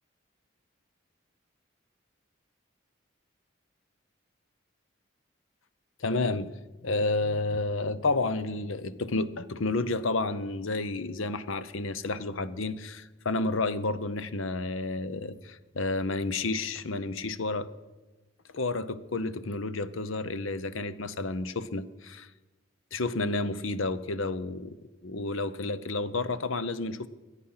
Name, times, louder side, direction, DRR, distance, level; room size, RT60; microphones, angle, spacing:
voice 1, 6.0-6.5 6.8-17.7 18.5-22.3 22.9-24.8 25.0-27.1, left 3 dB, 70° left, 15 dB, 0.7 m, -30 dB
23.0 x 10.0 x 5.7 m, 1.2 s
head